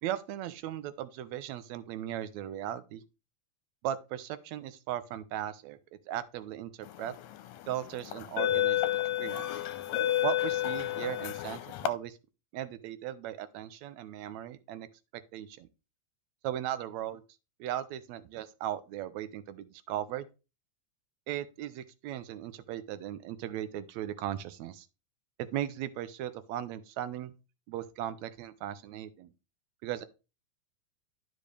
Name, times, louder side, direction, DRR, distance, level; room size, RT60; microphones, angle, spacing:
voice 1, 0.0-3.0 3.8-5.8 6.1-7.1 7.7-8.8 9.2-9.5 10.2-12.2 12.5-14.9 15.3-15.7 16.4-17.2 17.6-20.3 21.3-24.9 25.4-27.3 27.7-29.3 29.8-30.1, right 12 dB, 75° right, 1.9 m, -37 dB
sound 1, 7.1-7.3 8.1-11.9, left 13 dB, 80° left, 1.9 m, -30 dB
12.0 x 5.2 x 3.3 m
omnidirectional pair, 3.4 m